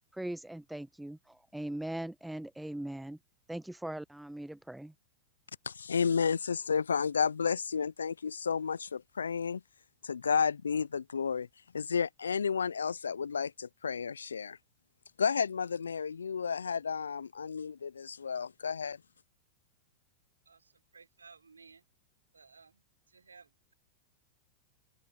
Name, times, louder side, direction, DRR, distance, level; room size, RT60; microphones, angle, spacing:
voice 1, 0.1-3.2 3.5-4.9, right 1 dB, 5° right, 1.1 m, -40 dB
voice 2, 5.7-9.6 10.0-11.5 11.7-14.6 15.2-19.0, left 6 dB, 80° left, 0.4 m, -32 dB
voice 3, 20.5-21.9 22.3-23.7, right 5 dB, 85° right, 5.8 m, -58 dB
open air
figure-of-eight pair, 95°, 0 cm